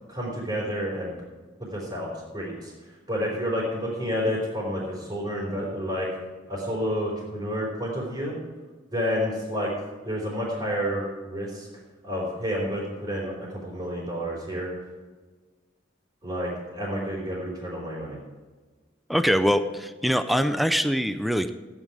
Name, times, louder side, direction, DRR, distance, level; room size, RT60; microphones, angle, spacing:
voice 1, 0.1-1.1 1.6-2.1 2.3-2.7 3.1-6.1 6.5-8.3 8.9-9.7 10.0-11.7 12.0-14.7 16.2-18.2, equal, 25° right, -7 dB, 4.0 m, -29 dB
voice 2, 19.1-21.5, equal, ahead, 9 dB, 0.5 m, -23 dB
14.5 x 10.0 x 4.8 m, 1.3 s
head